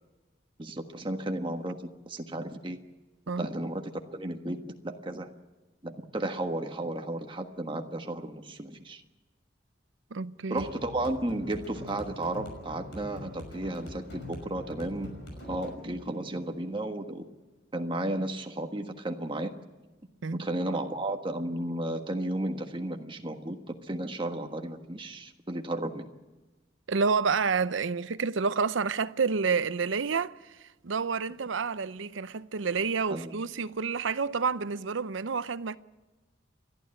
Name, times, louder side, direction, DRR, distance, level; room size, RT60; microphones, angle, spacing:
voice 1, 0.6-1.8 2.1-2.8 3.4-4.6 4.8-5.3 5.8-9.0 10.5-15.1 15.4-17.2 17.7-19.5 20.4-26.0 33.1-33.3, right 1 dB, 25° right, 1.4 m, -33 dB
voice 2, 10.1-10.6 20.2-20.5 26.9-35.8, right 5 dB, 85° right, 0.7 m, -29 dB
sound 1, 10.5-17.5, left 1 dB, 70° left, 5.9 m, -44 dB
29.5 x 12.0 x 8.7 m
head